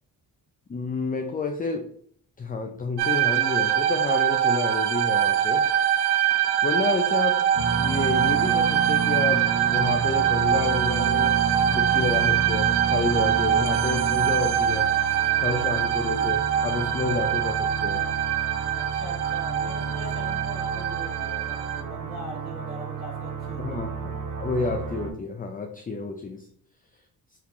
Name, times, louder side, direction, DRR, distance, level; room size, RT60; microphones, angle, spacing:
voice 1, 0.7-1.9 2.4-5.7 6.6-7.4 7.8-11.4 11.7-14.9 15.4-18.0 23.6-26.5, left 3 dB, 20° left, 4 dB, 0.4 m, -29 dB
sound 1, 3.0-21.8, right 10 dB, 70° right, 0.5 m, -24 dB
sound 2, 7.5-25.1, right 5 dB, 55° right, 0.9 m, -32 dB
voice 2, 18.7-23.6, right 1 dB, 20° right, -7 dB, 1.5 m, -41 dB
3.7 x 2.9 x 3.5 m, 0.62 s
cardioid pair, 85°, 41 cm